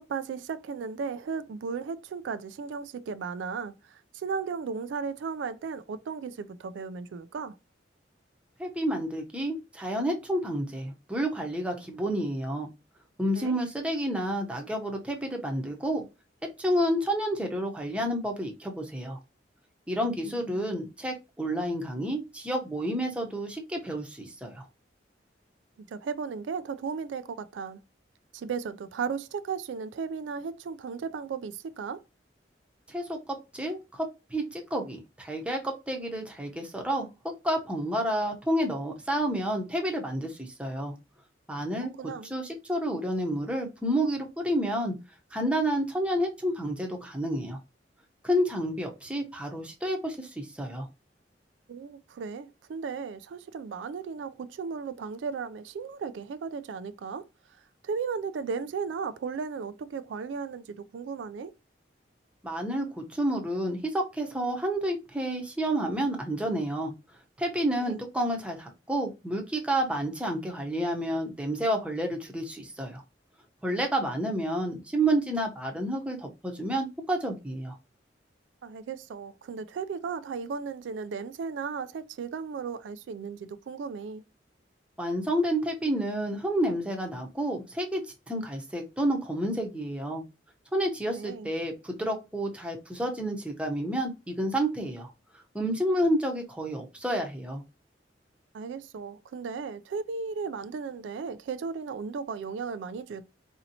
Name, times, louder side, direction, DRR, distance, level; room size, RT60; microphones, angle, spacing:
voice 1, 0.0-7.6 13.4-13.6 20.2-20.7 25.8-27.8 28.3-32.0 42.0-42.3 51.7-57.2 57.8-61.5 67.8-68.0 78.6-84.2 91.1-91.5 98.5-103.2, right 5 dB, 85° right, 0.3 m, -35 dB
voice 2, 8.6-12.7 13.2-16.0 16.6-19.2 19.9-24.7 32.9-33.2 33.5-40.9 41.5-41.9 42.2-44.9 45.3-47.6 48.2-50.9 62.4-66.9 67.4-73.0 73.6-77.8 85.0-90.2 90.7-95.1 95.5-97.6, right 1 dB, 5° right, 0.7 m, -30 dB
4.1 x 2.8 x 2.7 m
head